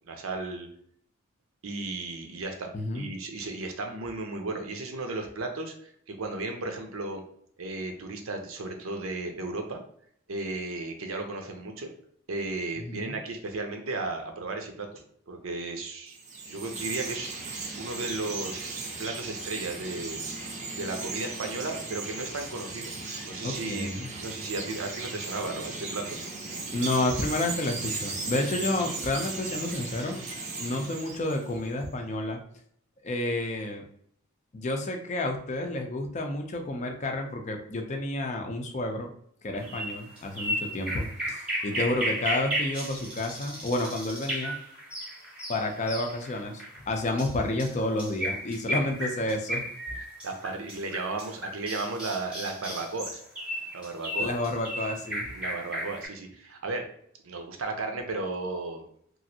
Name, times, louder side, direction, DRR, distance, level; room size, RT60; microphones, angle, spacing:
voice 1, 0.0-0.7 1.6-7.2 7.6-9.8 10.3-11.9 12.3-16.2 16.5-20.2 20.7-22.9 23.2-26.1 30.7-30.8 39.5-39.7 41.7-41.8 47.2-47.3 50.2-53.2 53.7-54.3 55.4-56.8 57.2-58.8, right 3 dB, 85° right, 4 dB, 0.6 m, -35 dB
voice 2, 2.7-3.1 12.8-13.2 23.4-24.1 26.7-30.2 30.6-32.4 33.0-33.8 34.5-39.1 39.4-44.5 45.5-49.6 54.2-55.3, left 2 dB, 35° left, 3 dB, 0.4 m, -30 dB
Chirp tweet, 16.1-31.7, right 3 dB, 35° right, 0.4 m, -37 dB
sound 1, 39.7-56.1, equal, 5° right, 0.8 m, -34 dB
3.0 x 2.5 x 2.7 m, 0.66 s
head